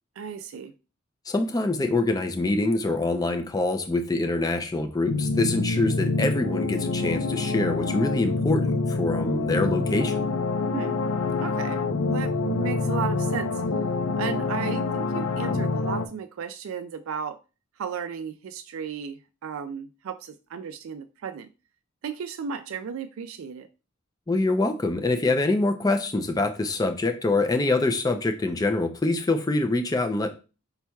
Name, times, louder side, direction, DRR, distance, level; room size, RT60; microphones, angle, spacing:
voice 1, 0.2-0.7 10.7-11.0 11.4-13.6 14.2-17.4 17.8-21.5 22.0-23.7, right 6 dB, 70° right, 9 dB, 0.3 m, -34 dB
voice 2, 1.3-10.2 24.3-30.3, left 2 dB, 15° left, 7 dB, 0.4 m, -25 dB
Oberheim Filter Chords, 5.1-16.1, left 3 dB, 75° left, 0.6 m, -26 dB
5.2 x 4.4 x 2.3 m, 0.32 s
head